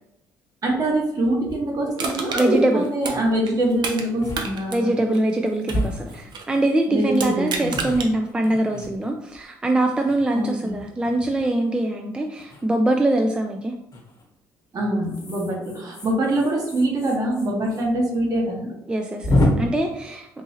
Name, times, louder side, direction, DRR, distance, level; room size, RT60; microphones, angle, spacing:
voice 1, 0.6-5.0 6.9-7.8 10.3-10.8 14.7-18.7, right 1 dB, 45° right, -1 dB, 1.2 m, -24 dB
sound 1, 1.5-1.6 2.1-2.2 2.4-2.7 3.6-3.8 4.2-4.4 4.8-4.9 5.7-6.6 7.2-9.4 9.9-10.7 12.4-12.6 13.9-14.3 15.0-17.8 18.1-18.2 18.5-18.6 19.2-19.5, left 1 dB, 40° left, 1.1 m, -28 dB
Crushing, 2.0-4.1 4.3-6.6 7.1-8.1 8.6-8.7, right 4 dB, 60° right, 0.6 m, -31 dB
voice 2, 2.3-2.8 4.7-13.7 18.9-20.3, right 1 dB, 10° right, 3 dB, 0.3 m, -23 dB
3.7 x 2.6 x 2.8 m, 0.84 s
supercardioid pair, 75°, 9 cm